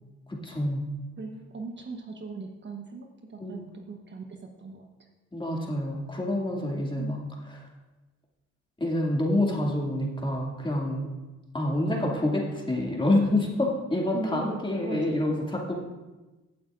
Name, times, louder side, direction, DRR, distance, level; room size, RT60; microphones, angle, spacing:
voice 1, 0.3-0.8 3.4-3.6 5.3-7.2 7.5-7.6 8.8-11.1 11.5-15.7, left 1 dB, 15° left, -2 dB, 2.3 m, -27 dB
voice 2, 1.2-5.1 7.0-7.2 14.1-14.5 14.8-15.1, right 3 dB, 40° right, 3 dB, 1.0 m, -39 dB
16.0 x 8.4 x 2.5 m, 1.1 s
cardioid pair, 90°, 30 cm